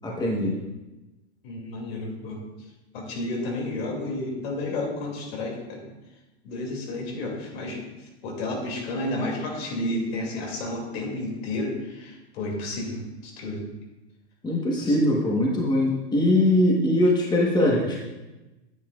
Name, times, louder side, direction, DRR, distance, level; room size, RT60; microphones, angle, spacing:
voice 1, 0.0-0.6 14.4-18.0, left 1 dB, 10° left, -2 dB, 1.4 m, -22 dB
voice 2, 1.4-2.4 2.9-5.8 6.4-7.8 8.2-13.6 14.8-15.1, left 2 dB, 65° left, -1 dB, 2.8 m, -31 dB
9.4 x 8.1 x 2.5 m, 1.1 s
hypercardioid pair, 115°, 33 cm